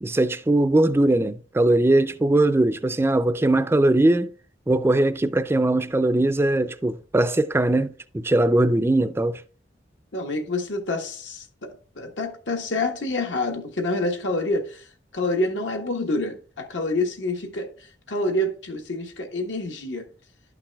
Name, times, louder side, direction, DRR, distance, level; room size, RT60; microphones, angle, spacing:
voice 1, 0.0-4.3 4.7-9.4, right 1 dB, 15° right, 0.3 m, -20 dB
voice 2, 10.1-14.9 15.1-20.1, left 2 dB, 80° left, 1.3 m, -27 dB
11.5 x 5.8 x 2.3 m
head